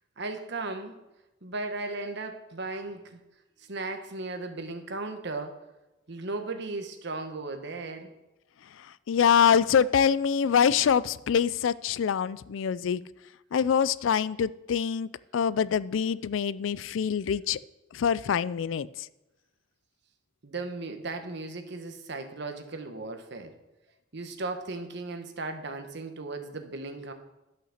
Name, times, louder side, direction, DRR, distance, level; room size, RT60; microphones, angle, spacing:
voice 1, 0.2-1.0 1.4-3.2 3.6-5.6 6.1-8.1 18.2-18.3 20.4-23.6 24.1-27.1, right 3 dB, 60° right, 1.2 m, -36 dB
voice 2, 9.1-13.0 13.5-17.6 17.9-18.9, left 7 dB, 75° left, 0.4 m, -25 dB
11.5 x 5.8 x 6.5 m
head